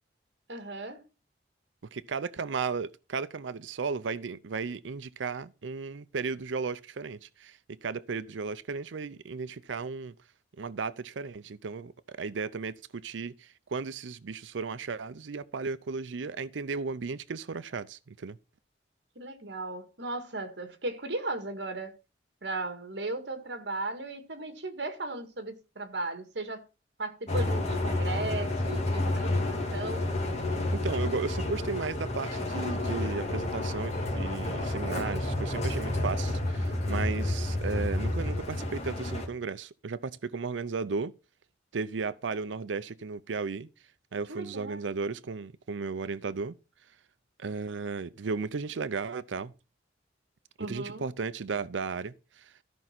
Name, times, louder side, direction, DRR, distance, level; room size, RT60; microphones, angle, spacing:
voice 1, 0.5-1.0 19.2-21.9 22.4-26.6 27.0-30.1 44.3-44.9 50.6-51.1, right 2 dB, 65° right, 1.9 m, -36 dB
voice 2, 1.9-10.1 10.6-18.4 29.2-29.3 30.7-41.1 41.7-43.7 44.1-46.5 47.4-49.5 50.6-52.5, right 4 dB, 85° right, 0.5 m, -35 dB
sound 1, 27.3-39.3, left 1 dB, 35° left, 2.6 m, -30 dB
13.5 x 5.4 x 5.9 m
head